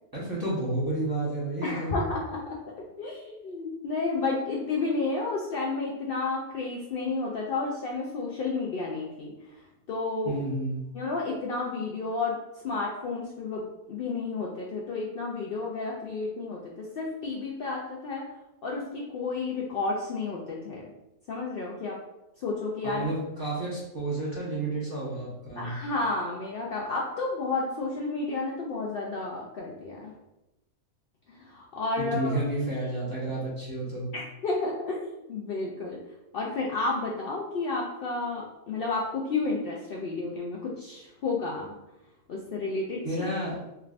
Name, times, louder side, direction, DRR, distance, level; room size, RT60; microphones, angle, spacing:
voice 1, 0.1-2.0 10.2-10.8 22.8-25.7 32.0-34.1 43.0-43.6, right 2 dB, 20° right, -8 dB, 0.8 m, -31 dB
voice 2, 1.6-2.6 3.0-9.3 9.9-10.4 10.9-12.4 12.6-18.2 18.6-20.8 21.3-22.0 22.4-23.1 25.6-30.1 31.3-32.4 34.1-35.0 35.3-36.0 36.3-41.7 42.3-43.0, left 3 dB, 90° left, -3 dB, 0.5 m, -31 dB
3.4 x 3.2 x 2.4 m, 0.93 s
omnidirectional pair, 1.5 m